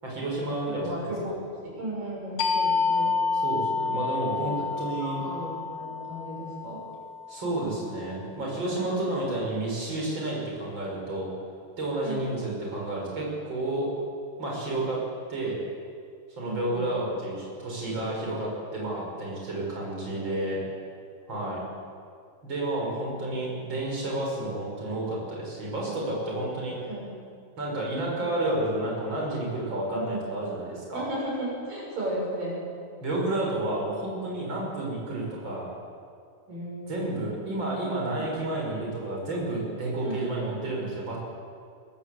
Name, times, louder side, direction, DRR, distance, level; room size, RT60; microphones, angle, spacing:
voice 1, 0.0-1.1 3.4-5.2 7.3-11.3 11.8-13.9 14.4-15.0 15.3-15.6 16.4-20.6 21.3-21.6 22.4-26.8 27.6-31.0 33.0-35.7 36.9-41.2, right 1 dB, 35° right, -3 dB, 6.8 m, -30 dB
voice 2, 0.6-3.2 4.4-4.6 5.0-6.8 12.0-12.3 16.4-16.9 20.1-20.7 21.3-21.6 25.9-26.1 26.9-27.1 29.9-30.2 30.9-32.6 36.5-37.3 38.1-38.3 40.0-40.6, right 1 dB, 80° right, -4 dB, 8.6 m, -35 dB
sound 1, 2.4-7.7, left 4 dB, 70° left, 3.3 m, -29 dB
22.5 x 20.0 x 8.3 m, 2.3 s
omnidirectional pair, 3.9 m